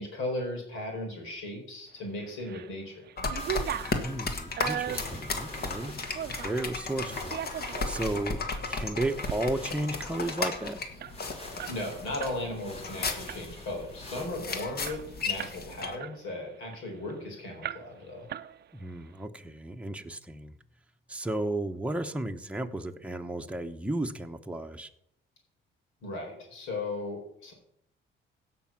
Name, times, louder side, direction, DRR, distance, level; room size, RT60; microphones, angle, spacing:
voice 1, 0.0-3.1 11.3-18.3 26.0-27.5, left 2 dB, 90° left, 1 dB, 4.4 m, -37 dB
sound 1, 2.2-2.7 3.0-6.6 7.1-8.1 8.5-8.7 9.1-9.4 9.7-9.8 10.1-12.4 12.7-12.9 13.3-13.7 14.2-14.3 14.5-15.6 16.0-17.2 17.6-18.0 18.3-18.9, right 10 dB, 55° right, 0.5 m, -38 dB
sound 2, 3.2-16.0, left 3 dB, 50° left, 1.8 m, -35 dB
sound 3, 3.4-14.3, left 1 dB, 30° left, 3.5 m, -47 dB
voice 2, 4.0-5.9 6.4-7.4 7.9-10.8 18.7-20.5 21.1-24.9, right 1 dB, 5° right, 5 dB, 1.0 m, -34 dB
16.5 x 6.1 x 5.9 m, 0.73 s
cardioid pair, 90°, 20 cm